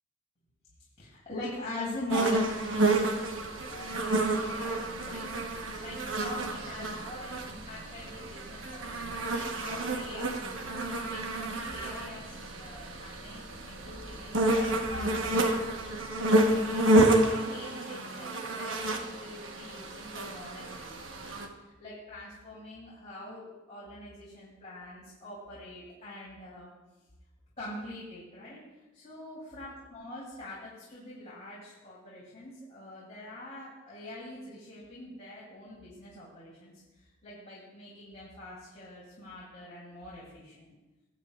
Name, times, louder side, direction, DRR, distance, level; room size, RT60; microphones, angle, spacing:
voice 1, 1.0-10.4 11.0-15.6 16.1-21.3 21.6-26.7 27.6-28.6 28.9-40.7, left 1 dB, 35° left, -8 dB, 3.0 m, -44 dB
sound 1, 2.1-21.5, right 1 dB, 70° right, 1.1 m, -29 dB
20.0 x 8.3 x 2.4 m, 1.1 s
head